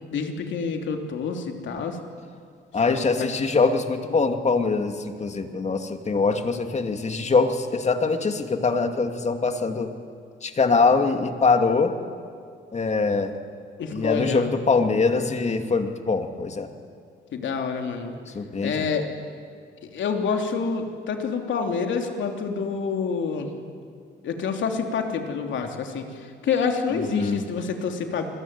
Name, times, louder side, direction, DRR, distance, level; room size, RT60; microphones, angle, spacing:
voice 1, 0.1-2.0 2.9-3.3 13.8-14.6 17.3-18.1 18.6-19.1 19.8-23.5 24.2-28.3, left 5 dB, 70° left, 4 dB, 3.3 m, -27 dB
voice 2, 2.7-9.9 10.4-11.9 12.7-13.3 13.9-16.7 18.3-18.9 27.1-27.4, left 4 dB, 35° left, 6 dB, 2.5 m, -23 dB
28.5 x 20.5 x 9.7 m, 2.2 s
cardioid pair, 90°, 20 cm